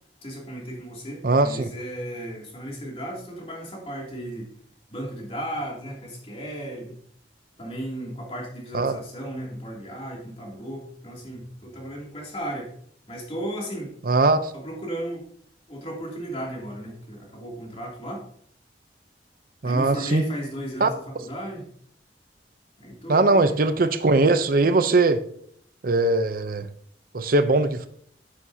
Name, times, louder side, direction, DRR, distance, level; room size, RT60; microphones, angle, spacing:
voice 1, 0.2-4.5 4.9-7.0 7.6-12.7 13.1-13.9 14.5-15.2 15.7-18.3 19.6-21.7 22.8-23.6, right 1 dB, 35° left, -2 dB, 2.7 m, -35 dB
voice 2, 1.2-1.7 8.7-8.9 14.1-14.5 19.6-20.2 20.8-20.9 23.1-25.2 25.8-26.7 27.1-27.9, right 3 dB, 55° right, 10 dB, 0.6 m, -20 dB
9.3 x 8.7 x 2.8 m, 0.63 s
head